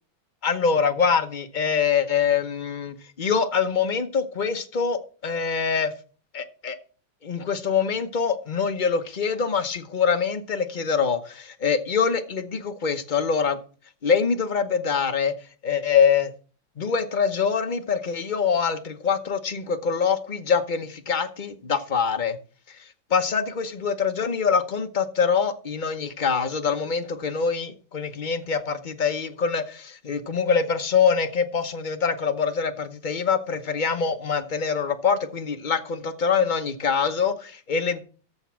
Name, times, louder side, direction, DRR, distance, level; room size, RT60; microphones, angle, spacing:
voice 1, 0.4-5.9 6.3-6.8 7.2-13.6 14.0-15.3 15.6-16.3 16.8-22.4 23.1-38.0, left 6 dB, 45° left, 0.6 m, -24 dB
14.0 x 5.5 x 6.1 m
omnidirectional pair, 2.2 m